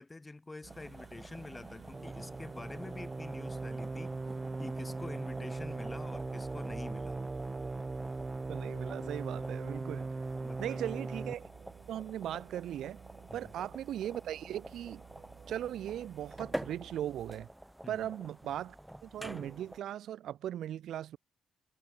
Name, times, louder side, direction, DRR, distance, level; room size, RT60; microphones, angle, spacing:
voice 1, 0.0-4.2 4.6-7.3 10.4-10.8 13.3-13.5 17.8-18.1, left 2 dB, 20° left, 5.5 m, -47 dB
sound 1, 0.6-17.5, right 8 dB, 55° right, 2.9 m, -55 dB
sound 2, 0.7-19.8, right 1 dB, 5° right, 2.0 m, -48 dB
sound 3, 1.9-11.4, right 3 dB, 20° right, 2.1 m, -39 dB
voice 2, 8.5-10.1 10.6-11.4 11.9-13.0 13.3-15.0 15.5-17.5 17.9-18.8 19.0-21.2, right 11 dB, 75° right, 2.1 m, -38 dB
cardioid pair, 90°, 0 cm